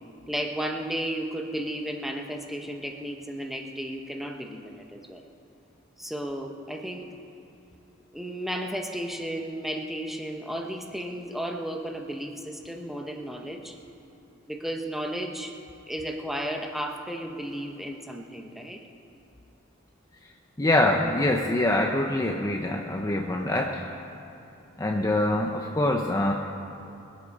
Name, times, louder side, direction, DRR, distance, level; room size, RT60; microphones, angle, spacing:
voice 1, 0.3-5.2 6.0-7.1 8.1-13.8 14.5-15.5 15.9-18.8, right 1 dB, ahead, 2 dB, 1.0 m, -33 dB
voice 2, 20.6-23.8 24.8-26.3, left 1 dB, 15° left, 1 dB, 0.6 m, -24 dB
22.0 x 8.4 x 5.4 m, 2.8 s
head